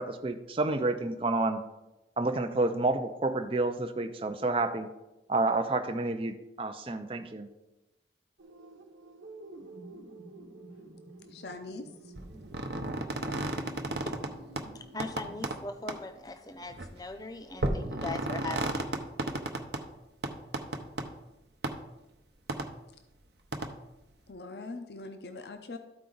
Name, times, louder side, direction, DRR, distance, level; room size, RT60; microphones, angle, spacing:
voice 1, 0.0-1.6 2.2-4.9 5.3-7.5, right 2 dB, 30° right, 6 dB, 0.5 m, -29 dB
sound 1, 8.4-15.4, right 1 dB, 90° right, 1.1 m, -49 dB
voice 2, 11.3-12.1 24.3-25.8, left 3 dB, 60° left, 7 dB, 0.7 m, -42 dB
sound 2, 12.2-14.3 14.6-14.7 15.0-15.6 15.9-16.0 16.7-16.9 17.6-19.8 20.2-21.0 21.6-21.7 22.5-22.7 23.5-23.7, right 2 dB, 60° right, 0.8 m, -33 dB
voice 3, 14.7-18.8, left 3 dB, 20° left, 6 dB, 0.6 m, -40 dB
13.0 x 4.7 x 3.9 m, 0.98 s
head